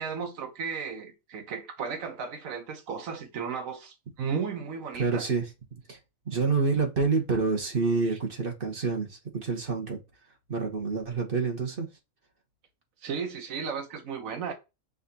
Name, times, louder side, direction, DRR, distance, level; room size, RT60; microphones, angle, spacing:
voice 1, 0.0-5.3 8.1-8.2 13.0-14.5, right 6 dB, 80° right, 1.2 m, -34 dB
voice 2, 5.0-5.4 5.9-6.0 6.3-10.0 10.5-11.9, right 4 dB, 45° right, 1.2 m, -27 dB
5.8 x 2.6 x 2.8 m
omnidirectional pair, 1.4 m